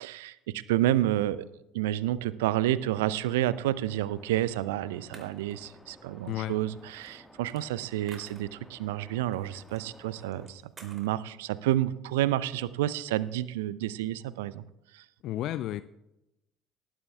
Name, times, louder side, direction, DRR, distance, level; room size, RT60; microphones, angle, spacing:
voice 1, 0.0-1.4 1.7-14.6 14.9-15.0, right 13 dB, 70° right, 18 dB, 0.4 m, -30 dB
sound 1, 2.9-10.5, left 1 dB, 5° left, 1.5 m, -54 dB
sound 2, 4.5-4.6 5.1-5.9 6.6-8.8 9.3-9.9 10.2-11.1, right 3 dB, 30° right, 2.9 m, -52 dB
voice 2, 6.3-6.6 15.2-15.8, left 13 dB, 55° left, 14 dB, 0.3 m, -32 dB
19.0 x 12.5 x 2.3 m, 0.87 s
figure-of-eight pair, 55°, 0 cm